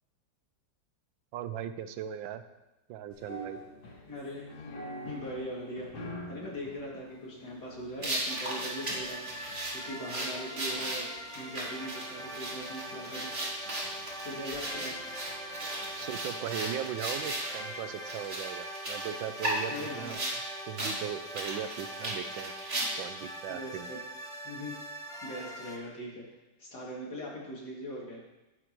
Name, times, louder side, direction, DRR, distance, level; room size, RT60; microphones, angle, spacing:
voice 1, 1.3-2.4 2.9-3.6 16.0-20.2 20.7-22.5 23.0-23.9, right 9 dB, 90° right, 10 dB, 1.4 m, -38 dB
sound 1, 3.1-16.4, equal, 85° left, 2.2 m, -48 dB
voice 2, 4.1-4.5 5.0-9.2 9.7-13.3 14.2-15.0 19.7-20.1 23.5-24.0 24.3-24.8 25.2-26.2 26.6-28.2, equal, 60° left, -4 dB, 2.9 m, -41 dB
sound 2, 8.0-17.6 18.1-20.4 20.8-21.0 21.3-23.2, right 1 dB, 30° right, 2.9 m, -36 dB
sound 3, 8.3-25.8, right 1 dB, 5° left, 0.3 m, -42 dB
11.5 x 9.5 x 3.0 m, 1.0 s
omnidirectional pair, 2.0 m